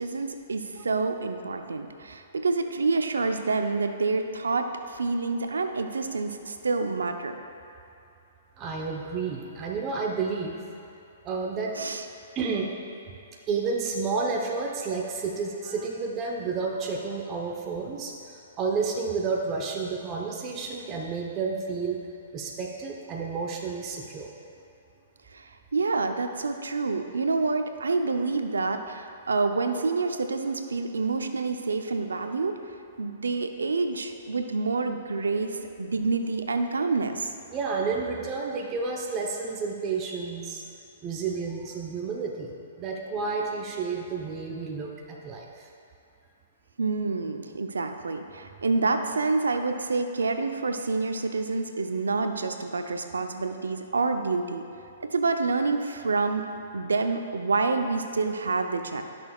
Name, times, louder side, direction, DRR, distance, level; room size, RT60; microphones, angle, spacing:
voice 1, 0.0-7.3 11.8-12.0 25.3-32.6 33.0-37.3 46.8-54.6 55.0-56.4 56.7-59.0, right 3 dB, 85° right, 6 dB, 0.6 m, -28 dB
voice 2, 8.6-10.6 11.2-11.8 12.3-12.7 13.5-22.0 22.3-24.3 37.5-40.6 41.0-45.7, right 4 dB, 30° right, 0 dB, 0.9 m, -31 dB
17.0 x 6.3 x 2.4 m, 2.8 s
hypercardioid pair, 125°, 0 cm